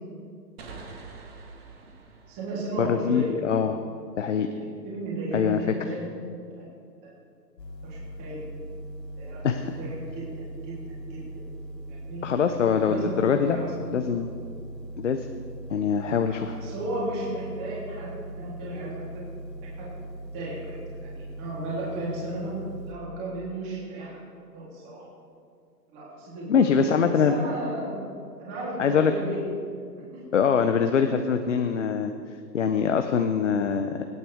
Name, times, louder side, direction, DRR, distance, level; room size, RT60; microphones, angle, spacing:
sound 1, 0.6-4.1, right 4 dB, 35° right, 1.8 m, -47 dB
voice 1, 2.3-3.3 4.6-6.0 6.5-6.6 7.0-7.1 7.8-8.4 9.2-10.8 11.1-11.2 11.9-12.2 12.8-13.7 14.0-14.1 16.2-19.2 19.8-19.9 20.3-22.5 22.9-24.2 24.5-25.0 25.9-28.0 28.4-29.4 30.0-30.1, right 1 dB, 20° right, -6 dB, 3.2 m, -34 dB
voice 2, 2.8-3.8 4.2-4.5 5.3-5.6 9.4-9.8 12.2-13.6 13.9-14.3 15.0-15.3 15.7-16.6 26.5-27.3 28.8-29.1 30.3-32.1 32.5-34.0, left 6 dB, 45° left, 7 dB, 0.7 m, -23 dB
sound 2, 7.6-22.9, right 1 dB, 75° left, 1.9 m, -40 dB
25.0 x 9.4 x 3.5 m, 2.4 s
hypercardioid pair, 160°, 50 cm